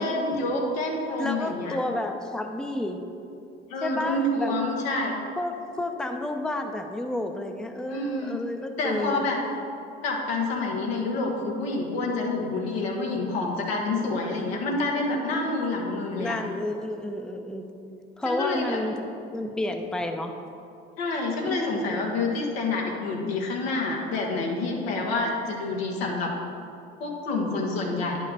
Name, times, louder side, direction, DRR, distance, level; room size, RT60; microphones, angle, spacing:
voice 1, 0.0-1.8 3.7-5.1 7.9-8.4 8.8-9.4 10.0-16.4 18.2-18.8 21.0-26.3 27.0-28.2, left 2 dB, 85° left, -1 dB, 1.4 m, -28 dB
voice 2, 1.2-3.0 3.8-4.6 5.4-9.3 16.2-17.6 18.2-19.0 19.3-20.3 21.5-21.7, left 1 dB, ahead, 5 dB, 0.6 m, -31 dB
10.0 x 5.3 x 4.1 m, 2.6 s
hypercardioid pair, 65°, 30 cm